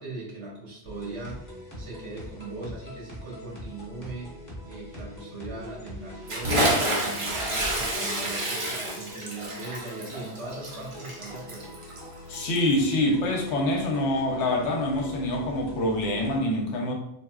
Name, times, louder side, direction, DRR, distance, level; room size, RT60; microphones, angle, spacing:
voice 1, 0.0-1.4 1.8-4.4 4.7-11.8, right 2 dB, 75° right, -4 dB, 1.3 m, -39 dB
sound 1, 0.9-16.4, left 1 dB, 15° left, 0.9 m, -43 dB
Bathtub (filling or washing) / Splash splatter, 6.3-12.8, right 1 dB, 40° right, 0.5 m, -29 dB
voice 2, 12.3-16.9, left 1 dB, 80° left, 2 dB, 0.9 m, -25 dB
4.0 x 2.0 x 2.3 m, 0.80 s
omnidirectional pair, 1.2 m